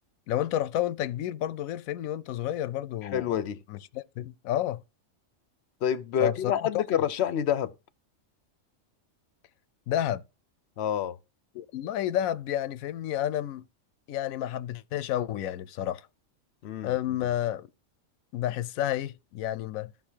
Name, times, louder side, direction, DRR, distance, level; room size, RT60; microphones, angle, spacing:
voice 1, 0.3-3.3 3.7-4.8 6.2-6.8 9.9-10.2 11.5-13.6 14.1-16.1 16.8-17.7 18.3-19.9, left 12 dB, 85° left, 1.0 m, -30 dB
voice 2, 3.0-3.6 5.8-7.7 10.8-11.2 16.6-17.0, left 9 dB, 60° left, 0.8 m, -28 dB
15.5 x 5.5 x 2.8 m
omnidirectional pair, 1.4 m